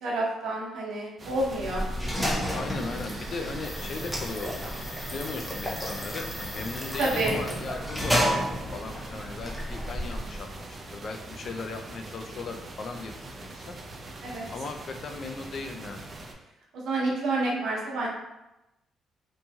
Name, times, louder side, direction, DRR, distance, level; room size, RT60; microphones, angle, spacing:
voice 1, 0.0-1.9 7.0-7.3 14.2-14.4 16.7-18.1, right 2 dB, 75° right, -2 dB, 0.7 m, -28 dB
sound 1, 1.2-16.3, right 2 dB, 35° right, 0.4 m, -43 dB
sound 2, 1.4-10.7, equal, 5° left, 0.6 m, -32 dB
voice 2, 2.5-13.8 14.5-16.1, left 4 dB, 55° left, 5 dB, 0.4 m, -38 dB
3.0 x 2.6 x 2.3 m, 0.93 s
cardioid pair, 90°, 0 cm